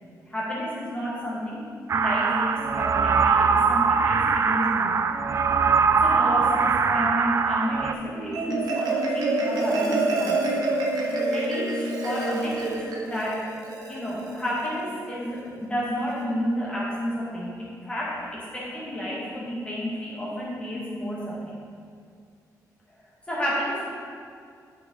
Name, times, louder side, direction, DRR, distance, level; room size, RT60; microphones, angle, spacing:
voice 1, 0.3-5.1 6.0-10.7 11.3-13.4 13.9-21.5 23.3-23.8, equal, 15° left, -7 dB, 1.9 m, -31 dB
sound 1, 1.9-7.9, right 5 dB, 45° right, 0.3 m, -22 dB
Marimba xylophone, 8.1-14.7, right 2 dB, 75° right, 1.2 m, -27 dB
9.8 x 5.3 x 3.9 m, 2.3 s
cardioid pair, 115°, 7 cm